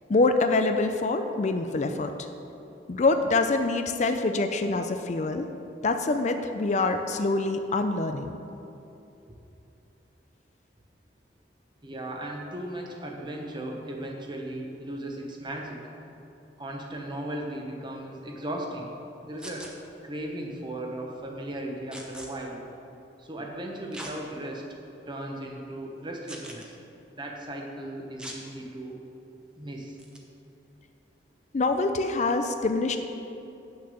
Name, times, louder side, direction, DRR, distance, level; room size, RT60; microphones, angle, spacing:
voice 1, 0.1-2.3 2.9-5.5 5.8-8.3 31.5-33.0, left 3 dB, 40° left, 7 dB, 0.5 m, -25 dB
voice 2, 11.8-15.9 16.6-18.9 19.2-19.7 20.0-22.6 23.2-24.6 25.1-26.8 27.1-29.0 29.6-30.0, right 1 dB, 25° right, 1 dB, 1.1 m, -36 dB
sound 1, 19.4-19.7 21.9-22.3 23.9-24.1 24.8-24.9 26.3-26.7 28.2-28.4 30.0-30.2, equal, 5° right, 1.0 m, -41 dB
8.8 x 6.5 x 6.9 m, 2.8 s
head